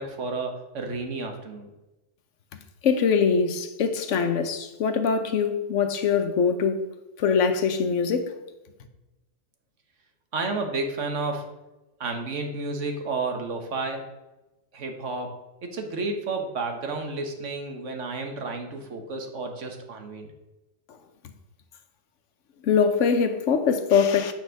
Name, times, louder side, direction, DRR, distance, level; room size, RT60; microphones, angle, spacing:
voice 1, 0.0-1.7 10.3-11.5 12.0-14.1 14.7-15.4 15.6-20.3, right 3 dB, 70° right, 1.5 m, -31 dB
voice 2, 2.5-6.8 7.2-8.4 22.6-24.3, left 6 dB, 70° left, 1.1 m, -23 dB
8.4 x 4.4 x 6.3 m
omnidirectional pair, 1.3 m